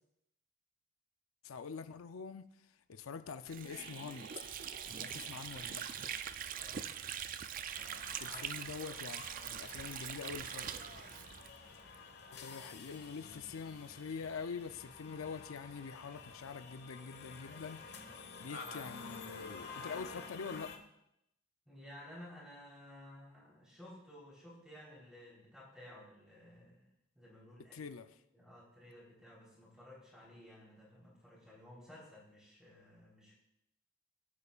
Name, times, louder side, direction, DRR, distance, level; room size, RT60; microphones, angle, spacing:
voice 1, 1.4-2.5 2.9-4.3 4.9-5.9 8.2-10.7 12.4-20.7 27.7-28.1, left 5 dB, 90° left, 0.5 m, -45 dB
Water / Sink (filling or washing), 3.5-12.0, right 9 dB, 40° right, 0.4 m, -43 dB
sound 1, 3.7-8.5 8.7-8.9, right 3 dB, 65° right, 2.8 m, -54 dB
voice 2, 6.5-6.9 8.2-8.4 21.7-26.9 27.2-27.8 28.3-33.4, left 1 dB, 5° right, 3.6 m, -55 dB
sound 2, 7.7-20.8, left 4 dB, 55° left, 1.2 m, -50 dB
22.0 x 8.3 x 2.4 m
head